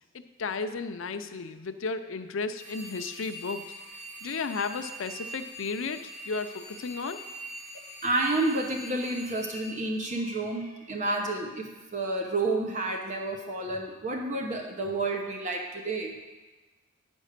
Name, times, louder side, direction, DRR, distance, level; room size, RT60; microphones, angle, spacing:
voice 1, 0.4-3.7 4.2-7.2, left 4 dB, 75° left, 9 dB, 0.5 m, -34 dB
sound 1, 2.6-10.7, right 1 dB, 5° right, 3.3 m, -44 dB
voice 2, 8.0-16.1, right 2 dB, 35° right, 2 dB, 0.9 m, -30 dB
9.8 x 5.3 x 6.6 m, 1.2 s
head